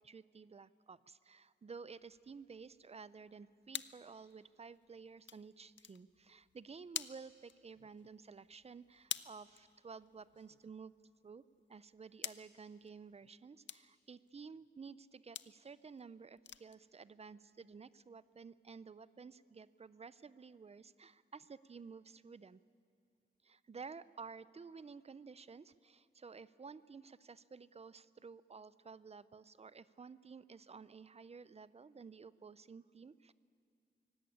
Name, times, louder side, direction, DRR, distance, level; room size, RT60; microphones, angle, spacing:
voice 1, 0.0-10.9 11.2-11.4 11.7-22.6 23.4-33.3, right 5 dB, 35° right, 17 dB, 0.5 m, -53 dB
sound 1, 2.0-13.3 13.7-13.9 14.3-14.7 15.3-15.6 16.0-16.1 16.4-16.8 17.0-17.3 17.7-17.8 18.2-18.3, left 9 dB, 70° left, 0.6 m, -49 dB
23.5 x 17.5 x 10.0 m, 2.3 s
wide cardioid pair, 155°, 20 cm